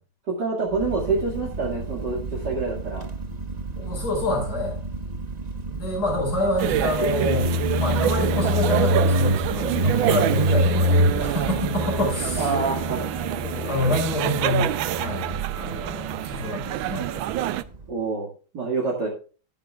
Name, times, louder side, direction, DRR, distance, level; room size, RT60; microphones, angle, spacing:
voice 1, 0.3-3.0 10.0-10.1 12.4-13.1 17.9-18.3 18.5-19.1, right 4 dB, 55° right, -3 dB, 2.8 m, -26 dB
Motorcycle, 0.7-17.9, equal, 30° right, 0.8 m, -27 dB
voice 2, 3.8-4.8 5.7-12.5 13.4-15.3 15.5-17.5, left 1 dB, 50° left, 0 dB, 5.9 m, -27 dB
sound 1, 6.6-17.6, right 12 dB, 80° right, 1.4 m, -27 dB
13.0 x 11.0 x 2.4 m, 0.37 s
omnidirectional pair, 2.2 m